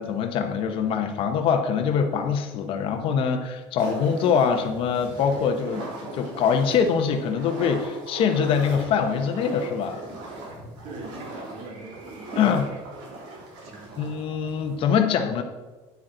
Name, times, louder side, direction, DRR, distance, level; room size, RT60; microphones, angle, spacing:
voice 1, 0.0-10.0 12.4-12.6 14.0-15.4, left 7 dB, 45° left, 7 dB, 0.9 m, -24 dB
sound 1, 3.8-14.8, right 1 dB, 90° right, 3.5 m, -38 dB
voice 2, 10.8-13.2 13.6-14.2, right 3 dB, 55° right, 2 dB, 2.2 m, -43 dB
9.5 x 8.8 x 3.8 m, 1.2 s
cardioid pair, 175°, 12 cm